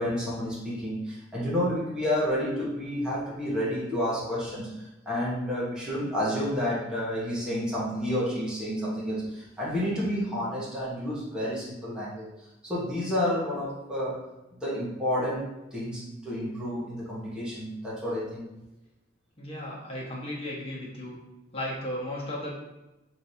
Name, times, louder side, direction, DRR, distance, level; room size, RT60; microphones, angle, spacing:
voice 1, 0.0-12.3 12.6-18.4, equal, 5° right, -9 dB, 1.2 m, -30 dB
voice 2, 19.4-21.2 21.5-22.5, left 1 dB, 30° left, -6 dB, 1.4 m, -35 dB
5.9 x 3.2 x 2.8 m, 0.98 s
head